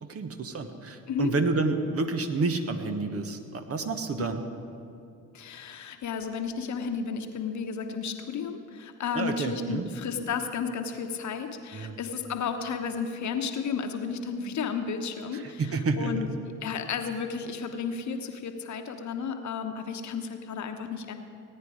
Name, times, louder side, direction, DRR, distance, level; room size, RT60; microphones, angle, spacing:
voice 1, 0.0-4.4 9.1-9.9 11.7-12.0 15.3-16.2, right 3 dB, 40° right, 7 dB, 1.3 m, -29 dB
voice 2, 4.2-4.5 5.3-15.6 16.0-16.3 16.6-21.1, left 6 dB, 50° left, 6 dB, 1.2 m, -33 dB
18.0 x 9.5 x 5.0 m, 2.6 s
hypercardioid pair, 55°, 37 cm